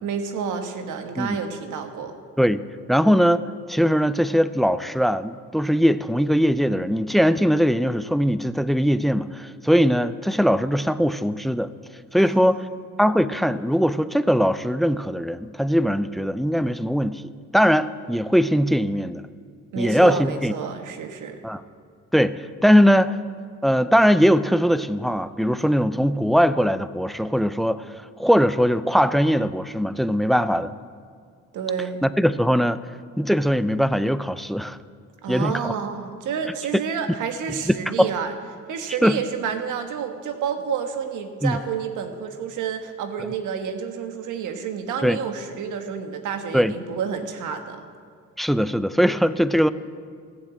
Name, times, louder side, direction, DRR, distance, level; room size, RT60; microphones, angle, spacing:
voice 1, 0.0-2.1 12.2-12.7 19.7-21.4 31.5-32.0 35.2-38.3 38.7-47.8, right 6 dB, 80° right, 6 dB, 1.4 m, -29 dB
voice 2, 2.9-11.7 12.1-12.6 13.0-17.2 17.5-19.2 19.8-20.5 21.4-21.6 22.1-23.2 23.6-30.7 32.0-32.8 33.2-34.8 35.3-35.7 37.7-38.1 39.0-39.2 41.4-41.6 45.0-45.2 46.5-46.7 48.4-49.7, equal, ahead, 14 dB, 0.4 m, -20 dB
14.5 x 7.3 x 8.4 m, 2.1 s
cardioid pair, 90°, 30 cm